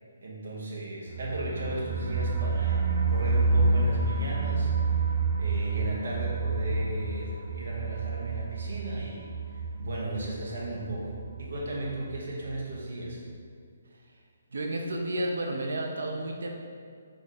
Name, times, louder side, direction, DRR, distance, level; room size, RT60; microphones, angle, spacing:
voice 1, 0.2-2.8 3.1-5.1 5.4-13.2, right 1 dB, 50° right, -4 dB, 1.0 m, -36 dB
sound 1, 1.1-11.8 12.1-12.2 12.5-12.6, right 3 dB, 30° right, 0.4 m, -29 dB
voice 2, 14.5-16.5, right 1 dB, 85° right, 1 dB, 0.6 m, -31 dB
3.6 x 3.4 x 4.1 m, 2.2 s
hypercardioid pair, 180°, 0 cm